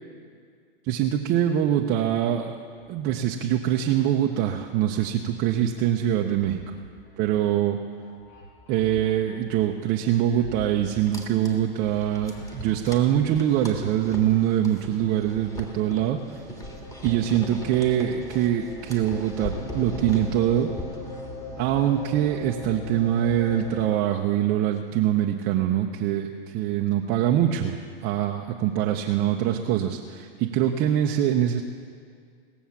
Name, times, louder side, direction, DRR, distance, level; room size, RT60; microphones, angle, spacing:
voice 1, 0.8-2.6 2.9-6.6 7.2-7.8 8.7-16.2 17.0-20.7 21.6-31.6, right 11 dB, 30° right, 2 dB, 0.7 m, -24 dB
sound 1, 2.7-3.5 3.9-5.5 5.9-15.6 15.9-18.5, right 2 dB, 75° left, 4.7 m, -48 dB
sound 2, 10.9-23.8, left 2 dB, 10° left, 1.8 m, -38 dB
19.0 x 7.1 x 7.2 m, 2.1 s
hypercardioid pair, 125°, 30 cm